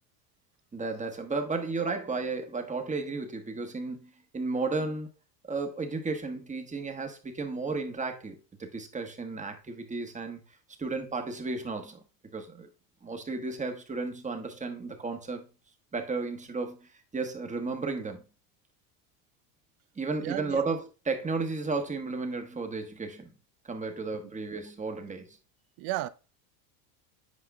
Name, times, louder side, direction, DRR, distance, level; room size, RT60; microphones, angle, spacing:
voice 1, 0.7-5.1 5.5-10.4 10.8-12.0 12.3-12.7 13.0-15.4 15.9-18.2 20.0-23.3 23.7-25.4, right 3 dB, 15° right, 1.2 m, -33 dB
voice 2, 20.2-20.6 25.8-26.1, right 16 dB, 50° right, 0.6 m, -33 dB
8.4 x 4.8 x 2.3 m
supercardioid pair, 95°, 48 cm